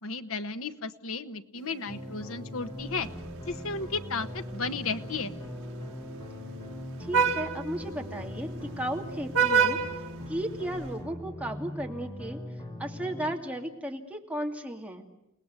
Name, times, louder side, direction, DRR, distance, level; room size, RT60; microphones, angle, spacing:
voice 1, 0.0-3.1 3.5-5.3, left 4 dB, 70° left, 9 dB, 1.3 m, -34 dB
sound 1, 1.5-10.3, right 1 dB, 50° right, 4.9 m, -48 dB
sound 2, 1.9-13.4, left 1 dB, 20° left, 3.6 m, -41 dB
Vehicle horn car horn honking, 2.8-10.9, right 6 dB, 70° right, 2.1 m, -32 dB
voice 2, 7.0-8.5 8.8-9.8 10.3-12.4 12.8-15.1, right 1 dB, 5° right, 1 dB, 2.6 m, -34 dB
30.0 x 18.5 x 9.6 m, 0.90 s
head